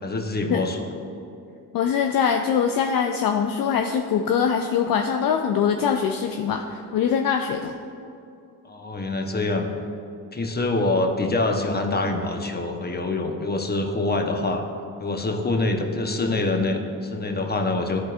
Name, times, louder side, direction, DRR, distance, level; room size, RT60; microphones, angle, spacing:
voice 1, 0.0-0.8 8.6-9.7 10.3-14.6 15.0-18.0, left 2 dB, 20° left, 3 dB, 1.0 m, -25 dB
voice 2, 1.7-7.7, left 7 dB, 50° left, 4 dB, 0.5 m, -23 dB
11.5 x 4.1 x 2.5 m, 2.6 s
hypercardioid pair, 50°, 44 cm